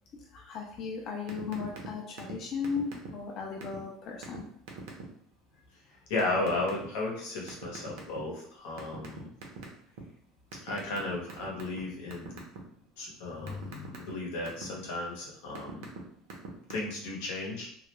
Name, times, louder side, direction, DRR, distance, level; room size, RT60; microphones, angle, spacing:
voice 1, 0.3-4.4 13.3-14.1, left 5 dB, 35° left, 0 dB, 0.4 m, -37 dB
sound 1, 1.3-1.9 2.2-2.4 2.6-3.3 3.6-3.8 4.2-4.4 4.7-5.0 6.2-6.8 7.5-8.4 8.8-10.0 10.5-11.8 12.1-12.6 13.0-14.7 15.3-16.0 16.3-16.7, right 5 dB, 70° right, 0.6 m, -42 dB
voice 2, 6.1-9.3 10.6-12.4 13.0-13.7 14.0-15.8 16.7-17.7, left 2 dB, 90° left, -2 dB, 0.8 m, -34 dB
2.3 x 2.1 x 3.0 m, 0.64 s
cardioid pair, 180°, 0 cm